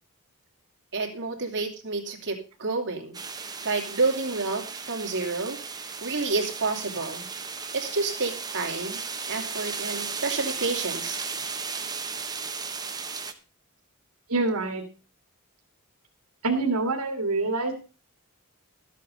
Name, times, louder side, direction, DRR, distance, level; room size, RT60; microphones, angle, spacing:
voice 1, 0.9-3.2 3.6-7.3 7.7-9.0 9.3-11.2, right 3 dB, 55° right, 2 dB, 2.9 m, -29 dB
sound 1, 3.1-13.3, right 5 dB, 20° right, 1.1 m, -35 dB
voice 2, 14.3-14.8 16.4-17.7, right 3 dB, 80° right, 4 dB, 1.9 m, -26 dB
13.0 x 8.3 x 5.3 m, 0.34 s
head